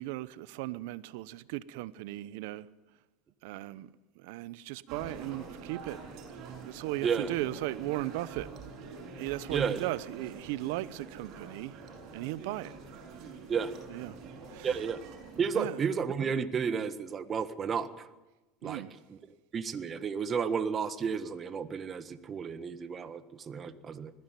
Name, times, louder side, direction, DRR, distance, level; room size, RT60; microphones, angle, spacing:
voice 1, 0.0-2.7 3.4-3.9 4.2-6.0 6.7-8.5 9.2-11.7 12.1-12.7 13.9-14.2 14.5-14.7 15.5-15.8 18.6-19.0, right 17 dB, 75° right, 0.9 m, -36 dB
sound 1, 4.9-15.5, right 4 dB, 55° right, 6.7 m, -46 dB
voice 2, 7.0-7.3 9.5-9.8 13.5-13.7 14.6-15.0 15.4-18.1 18.6-19.2 19.5-24.1, right 6 dB, 35° right, 1.5 m, -32 dB
20.5 x 15.5 x 9.2 m
supercardioid pair, 100°, 0 cm